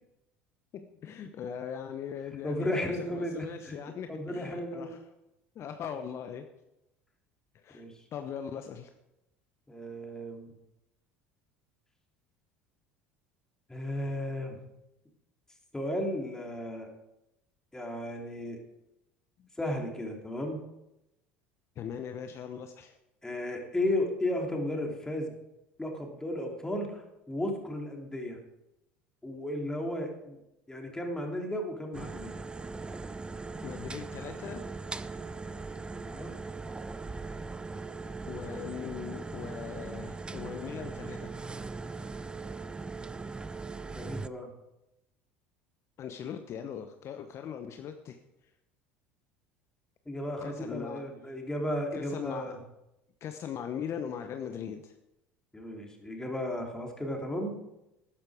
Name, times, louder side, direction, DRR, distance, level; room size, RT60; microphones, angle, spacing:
voice 1, 0.7-5.0 5.5-6.5 7.5-8.9 21.8-23.0 33.6-34.6 38.3-41.3 46.0-48.2 50.4-51.1 51.9-52.6 53.2-54.9, left 8 dB, 45° left, 7 dB, 0.9 m, -40 dB
voice 2, 2.4-3.8 4.1-5.0 7.7-8.0 9.7-10.5 13.7-14.6 15.7-16.9 17.7-18.6 19.6-20.6 23.2-25.3 25.8-28.4 29.2-30.4 30.7-32.3 35.9-36.3 43.9-44.5 50.0-52.6 55.5-57.6, left 1 dB, 10° left, 1 dB, 3.1 m, -34 dB
sound 1, 31.9-44.3, right 3 dB, 15° right, 0.5 m, -40 dB
13.0 x 10.5 x 5.0 m, 0.89 s
hypercardioid pair, 75°, 6 cm